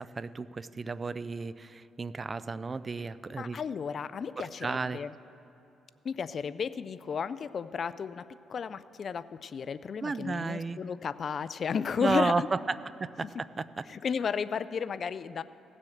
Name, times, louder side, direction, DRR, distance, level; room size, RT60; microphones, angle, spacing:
voice 1, 0.0-3.6 4.4-5.0 10.0-10.8 12.0-13.8, right 4 dB, 30° right, 16 dB, 0.3 m, -33 dB
voice 2, 3.4-5.1 6.0-12.5 13.3-13.4 13.9-15.4, left 6 dB, 50° left, 15 dB, 0.4 m, -33 dB
16.0 x 7.5 x 6.4 m, 2.8 s
cardioid pair, 90°, 0 cm